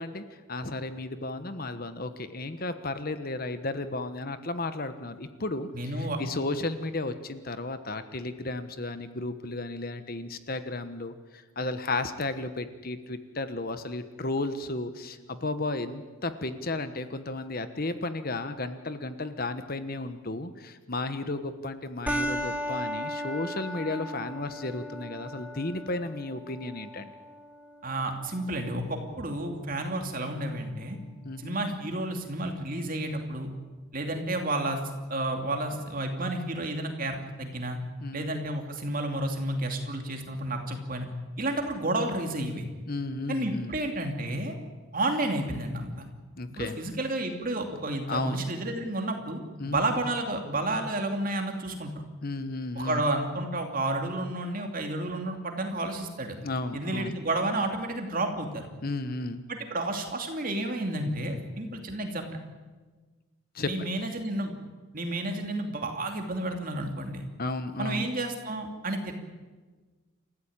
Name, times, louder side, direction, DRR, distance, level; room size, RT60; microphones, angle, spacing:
voice 1, 0.0-27.1 31.2-31.6 38.0-38.3 42.9-43.8 46.4-46.8 48.1-48.4 49.6-49.9 52.2-53.0 56.4-57.2 58.8-59.4 63.5-63.7 67.4-68.1, left 2 dB, 45° left, 10 dB, 1.2 m, -34 dB
voice 2, 5.7-6.2 27.8-31.0 31.4-33.5 33.9-34.8 35.1-37.8 38.1-41.1 41.4-42.6 43.3-44.5 44.9-46.1 46.5-49.4 49.6-52.0 52.8-56.4 56.7-58.7 59.5-62.3 63.6-64.5 64.9-67.2 67.8-69.1, right 1 dB, 40° right, 4 dB, 2.8 m, -31 dB
sound 1, 22.1-31.0, equal, 5° right, 2.1 m, -37 dB
28.0 x 15.0 x 8.9 m, 1.4 s
head